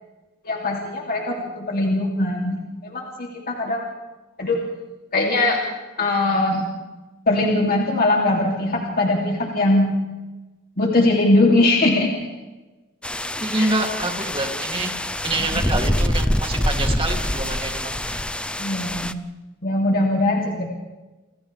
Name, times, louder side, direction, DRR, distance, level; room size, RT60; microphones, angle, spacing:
voice 1, 0.4-3.9 4.4-4.6 5.1-5.6 6.0-6.6 7.3-9.9 10.8-12.3 13.6-13.7 18.6-19.1 19.6-20.7, left 2 dB, 45° left, -1 dB, 2.8 m, -21 dB
sound 1, 13.0-19.1, left 1 dB, 5° left, 0.6 m, -25 dB
voice 2, 13.4-14.9 15.2-18.2, right 2 dB, 25° right, 2 dB, 2.8 m, -26 dB
28.5 x 27.5 x 3.4 m, 1.1 s
head